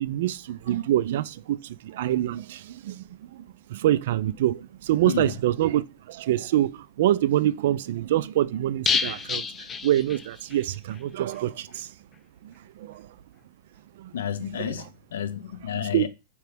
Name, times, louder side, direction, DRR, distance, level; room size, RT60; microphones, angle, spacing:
voice 1, 0.0-3.0 3.3-3.4 3.7-9.5 9.8-11.9 12.4-13.1 14.0-14.1 14.6-14.7 15.9-16.1, right 13 dB, 65° right, 0.3 m, -26 dB
sound 1, 8.9-10.6 10.9-11.0 11.3-11.4, left 5 dB, 20° left, 0.3 m, -28 dB
voice 2, 14.1-16.1, left 9 dB, 85° left, 0.6 m, -31 dB
4.7 x 3.0 x 3.3 m
hypercardioid pair, 125°, 0 cm